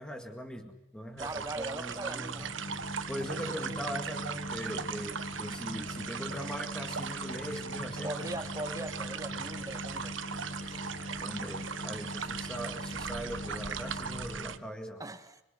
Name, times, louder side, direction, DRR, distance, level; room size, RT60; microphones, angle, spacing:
voice 1, 0.0-2.6 3.1-8.3 10.6-10.8 11.2-15.0, equal, 5° left, 1.9 m, -41 dB
voice 2, 1.2-2.5 3.3-3.8 8.0-10.2 15.0-15.4, right 2 dB, 20° right, 2.0 m, -40 dB
sound 1, 1.2-14.6, right 7 dB, 85° right, 1.3 m, -39 dB
sound 2, 2.1-14.7, left 1 dB, 40° left, 0.9 m, -42 dB
26.0 x 25.5 x 8.0 m
head